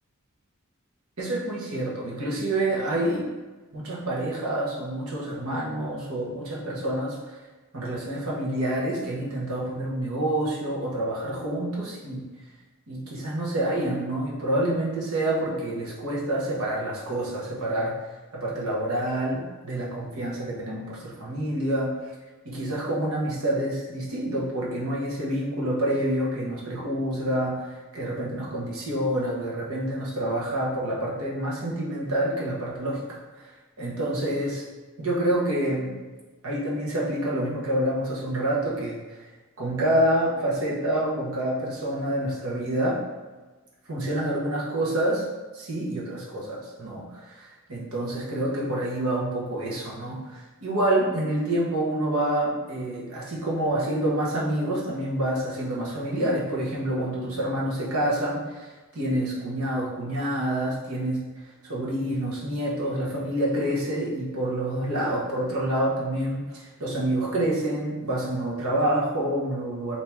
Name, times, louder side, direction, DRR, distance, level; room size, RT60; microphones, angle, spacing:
voice 1, 1.2-3.3 3.7-7.4 7.7-12.2 12.9-17.9 18.3-22.1 22.4-33.0 33.3-33.5 33.8-34.7 35.0-35.9 36.4-39.3 39.6-43.0 43.9-45.2 45.5-61.2 61.6-70.0, right 1 dB, 75° right, -5 dB, 1.2 m, -27 dB
4.4 x 2.9 x 3.5 m, 1.2 s
head